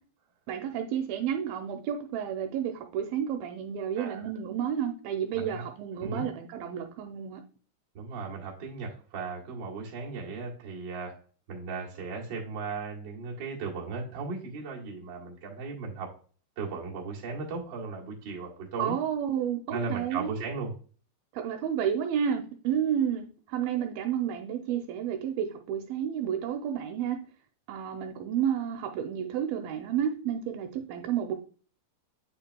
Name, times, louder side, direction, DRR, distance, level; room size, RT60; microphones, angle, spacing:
voice 1, 0.5-7.4 18.8-20.3 21.3-27.2 27.7-31.3, right 9 dB, 80° right, 2.4 m, -31 dB
voice 2, 5.3-5.6 6.0-6.3 7.9-11.2 11.5-16.1 16.5-19.0 19.7-20.7, right 4 dB, 45° right, 1.7 m, -36 dB
8.6 x 5.4 x 2.2 m
omnidirectional pair, 4.4 m